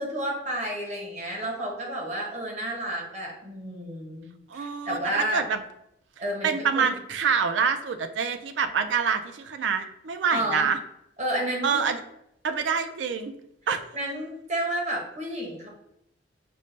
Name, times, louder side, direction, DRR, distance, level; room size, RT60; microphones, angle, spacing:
voice 1, 0.0-5.4 6.2-6.9 10.3-10.7 11.2-11.8 13.9-15.7, right 1 dB, 40° right, -2 dB, 1.0 m, -31 dB
voice 2, 4.5-5.6 6.4-10.8 11.6-12.0 12.4-13.3 13.7-13.8, right 6 dB, 80° right, 8 dB, 0.4 m, -26 dB
5.3 x 2.1 x 3.2 m, 0.77 s
head